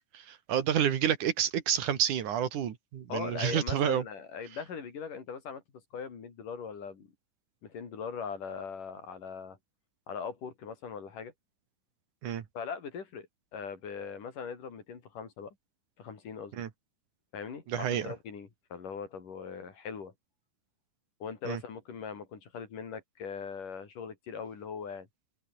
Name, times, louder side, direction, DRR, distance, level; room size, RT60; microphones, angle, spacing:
voice 1, 0.1-4.0 12.2-12.4 16.6-16.7 17.7-18.1 21.5-21.6, right 9 dB, 75° right, 3.4 m, -29 dB
voice 2, 3.1-5.6 5.9-7.1 7.6-9.6 10.1-11.3 12.6-13.3 13.5-15.6 16.0-16.5 17.3-20.1 21.2-25.1, left 6 dB, 85° left, 5.4 m, -40 dB
open air
omnidirectional pair, 3.6 m